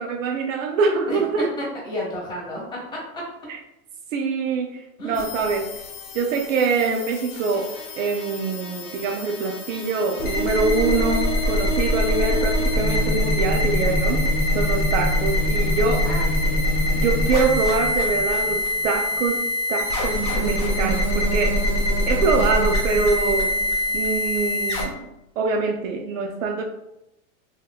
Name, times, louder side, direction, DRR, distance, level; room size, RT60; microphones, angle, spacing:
voice 1, 0.0-1.5 3.5-3.6 4.1-5.8 6.1-14.3 14.5-16.1 17.0-21.7 22.1-23.6 23.9-25.1 25.4-26.6, right 4 dB, 65° right, 4 dB, 0.5 m, -24 dB
voice 2, 1.1-3.2 5.0-5.3 16.0-16.7, equal, 10° left, -6 dB, 1.3 m, -32 dB
sound 1, 5.2-24.8, left 1 dB, 25° left, 0.6 m, -23 dB
3.2 x 3.0 x 2.2 m, 0.89 s
supercardioid pair, 140°, 42 cm